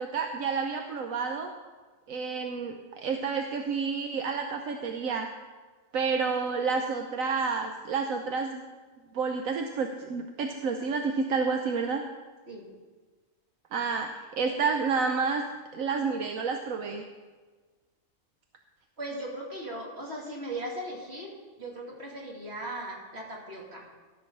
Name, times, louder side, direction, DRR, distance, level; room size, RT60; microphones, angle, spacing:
voice 1, 0.0-1.5 2.1-5.3 5.9-8.6 9.1-12.0 13.7-15.4 15.7-17.0, right 5 dB, 80° right, 4 dB, 1.2 m, -30 dB
voice 2, 19.0-23.8, right 1 dB, 50° right, -3 dB, 2.8 m, -38 dB
13.5 x 6.3 x 6.6 m, 1.4 s
omnidirectional pair, 1.4 m